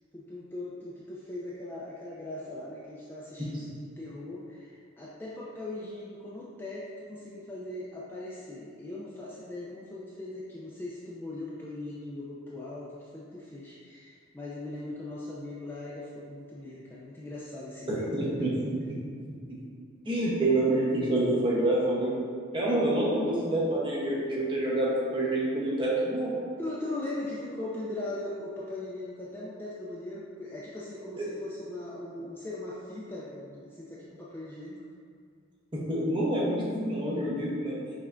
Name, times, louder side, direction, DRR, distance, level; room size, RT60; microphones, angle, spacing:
voice 1, 0.1-18.1 18.4-18.5 26.6-34.8, left 2 dB, 10° left, -7 dB, 0.4 m, -39 dB
voice 2, 17.9-18.8 20.1-22.2 22.5-26.4 31.2-31.3 35.7-37.8, right 1 dB, 25° right, -6 dB, 0.8 m, -27 dB
5.6 x 3.3 x 2.5 m, 2.2 s
head